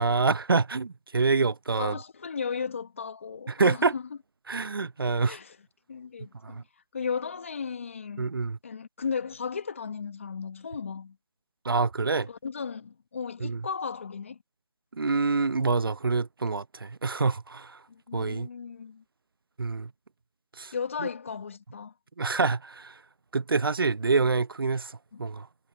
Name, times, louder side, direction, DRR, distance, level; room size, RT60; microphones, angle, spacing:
voice 1, 0.0-2.0 3.5-3.9 4.5-5.4 6.4-6.6 8.2-8.6 11.6-12.3 13.4-13.6 15.0-17.8 18.1-18.5 19.6-19.9 20.6-20.7 22.2-23.0 23.3-25.5, right 4 dB, 65° right, 0.7 m, -26 dB
voice 2, 1.8-4.0 5.2-5.6 5.9-6.6 6.9-8.4 8.6-11.2 12.3-14.4 17.9-19.0 20.7-21.9 25.1-25.2, left 6 dB, 35° left, 1.5 m, -35 dB
figure-of-eight pair, 170°, 13 cm